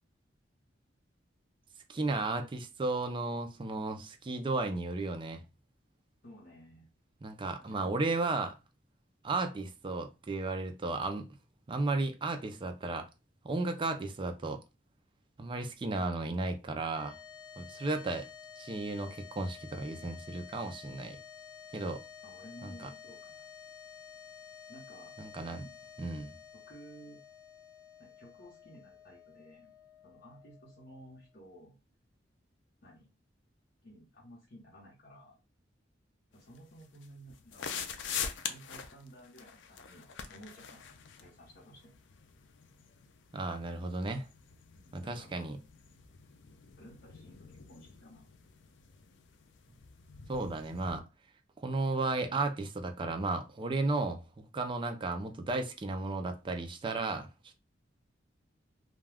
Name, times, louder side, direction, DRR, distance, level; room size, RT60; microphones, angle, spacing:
voice 1, 1.9-5.4 7.2-8.5 9.2-11.3 11.7-13.1 13.4-14.6 15.4-17.2 17.6-18.3 18.6-21.2 21.7-22.0 22.6-22.9 25.2-25.6 26.0-26.4 43.3-44.3 44.9-45.6 50.3-51.0 51.6-57.3, right 3 dB, 25° right, 0.4 m, -34 dB
voice 2, 6.2-6.9 7.6-8.0 22.2-23.5 24.7-25.7 26.5-27.2 28.0-29.7 30.0-31.8 32.8-33.1 33.8-35.4 36.3-37.7 38.4-41.9 44.7-45.5 46.8-48.3, equal, 55° left, 0.9 m, -54 dB
sound 1, 16.9-31.3, left 7 dB, 20° left, 1.1 m, -52 dB
sound 2, 36.3-51.0, left 7 dB, 75° left, 0.4 m, -45 dB
2.3 x 2.2 x 3.3 m
head